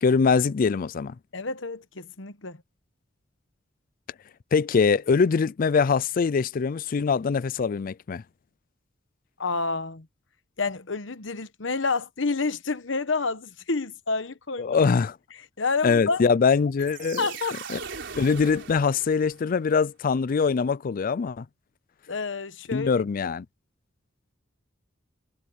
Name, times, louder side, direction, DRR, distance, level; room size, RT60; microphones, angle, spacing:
voice 1, 0.0-1.2 4.5-8.2 14.6-15.2 15.8-17.2 17.7-17.8 18.1-21.5 22.7-23.5, left 5 dB, 45° left, 0.4 m, -23 dB
voice 2, 1.3-2.6 9.4-10.1 10.6-14.8 15.6-16.2 17.2-17.6 22.1-23.0, left 4 dB, 75° left, 1.2 m, -29 dB
sound 1, 16.8-19.6, right 6 dB, 65° right, 4.8 m, -39 dB
head